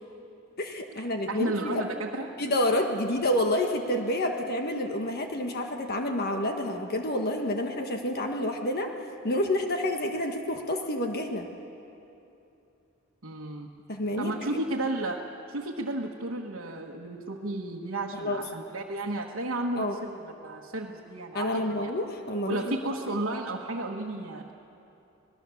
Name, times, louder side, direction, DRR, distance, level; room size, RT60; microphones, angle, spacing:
voice 1, 0.6-1.9 2.4-8.9 9.2-11.5 13.9-14.6 18.2-18.4 19.8-20.0 21.3-22.8 23.1-23.2, left 1 dB, 50° left, 4 dB, 1.4 m, -29 dB
voice 2, 1.3-2.3 13.2-13.7 14.2-21.9 22.5-24.6, right 2 dB, 70° right, -2 dB, 1.4 m, -33 dB
26.0 x 19.0 x 7.1 m, 2.8 s
head